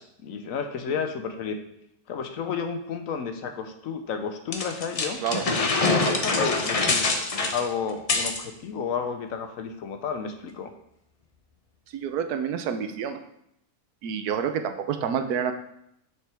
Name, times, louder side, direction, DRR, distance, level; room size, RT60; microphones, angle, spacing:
voice 1, 0.0-1.6 2.1-5.2 5.9-7.2 7.5-10.7, left 6 dB, 65° left, 7 dB, 1.2 m, -32 dB
sound 1, 4.5-8.4, left 3 dB, 40° left, 0.5 m, -25 dB
voice 2, 11.9-13.2 14.0-15.5, right 7 dB, 80° right, 8 dB, 1.2 m, -28 dB
7.4 x 6.6 x 3.4 m, 0.76 s
omnidirectional pair, 1.6 m